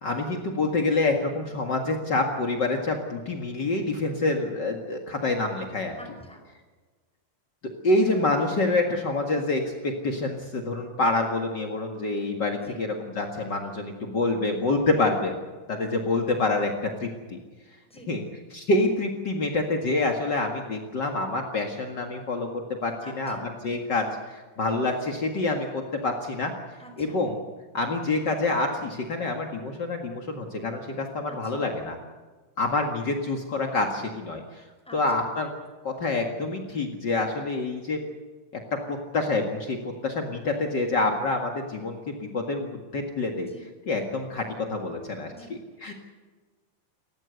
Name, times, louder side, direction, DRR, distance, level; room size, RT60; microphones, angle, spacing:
voice 1, 0.0-5.9 7.8-15.3 15.7-16.7 17.0-17.4 18.1-18.2 18.5-26.5 27.0-27.4 27.7-32.0 32.6-34.6 34.9-35.5 35.8-38.0 38.9-39.8 40.0-43.5 43.9-45.9, left 2 dB, 55° left, 2 dB, 1.2 m, -27 dB
voice 2, 6.0-6.4 12.5-12.8 17.9-18.1 23.0-23.5 26.8-27.2 31.3-31.7 34.8-35.3 43.4-43.7 45.3-45.5, equal, ahead, 3 dB, 4.5 m, -47 dB
29.5 x 15.0 x 8.0 m, 1.4 s
omnidirectional pair, 5.2 m